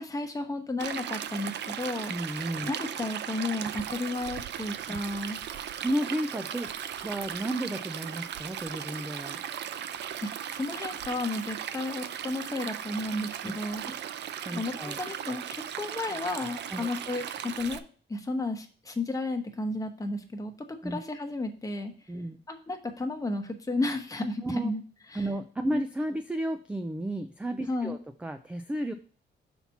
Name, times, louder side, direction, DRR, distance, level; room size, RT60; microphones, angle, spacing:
voice 1, 0.0-2.1 2.7-5.4 10.2-13.8 14.5-17.8 18.1-21.9 22.5-24.8 25.1-25.3 25.7-25.8 27.7-28.0, left 2 dB, 15° left, 4 dB, 1.0 m, -33 dB
Stream, 0.8-17.8, right 9 dB, 65° right, 0.5 m, -37 dB
voice 2, 2.1-2.7 5.8-6.7 7.0-9.4 13.4-13.5 13.8-13.9 14.5-15.0 16.7-16.9 20.8-21.0 22.1-22.4 24.4-24.7 25.1-28.9, right 1 dB, 5° right, 7 dB, 0.3 m, -32 dB
5.7 x 4.3 x 5.8 m, 0.41 s
cardioid pair, 150°, 19 cm